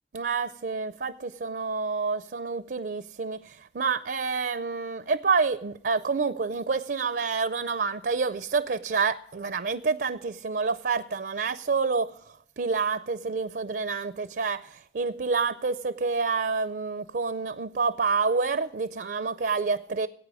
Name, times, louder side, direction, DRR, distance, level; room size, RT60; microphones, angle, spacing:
voice 1, 0.1-12.2 12.6-20.1, right 4 dB, 60° right, 0.5 m, -28 dB
18.0 x 8.8 x 4.8 m
head